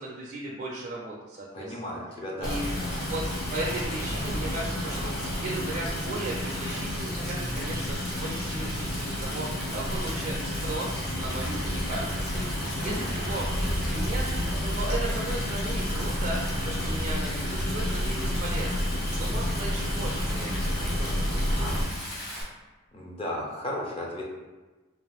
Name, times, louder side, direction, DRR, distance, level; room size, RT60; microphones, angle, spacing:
voice 1, 0.0-2.0 2.4-3.2 3.5-12.5 12.8-14.2 14.6-18.9 19.2-21.7, right 2 dB, 40° right, -4 dB, 0.4 m, -36 dB
voice 2, 1.5-2.9 12.8-13.1 22.9-24.2, left 1 dB, 25° left, -3 dB, 0.5 m, -35 dB
sound 1, 2.4-21.8, equal, 75° left, 1.2 m, -30 dB
Stream, 2.4-22.4, left 1 dB, 45° left, 0.8 m, -38 dB
2.4 x 2.4 x 3.3 m, 1.2 s
head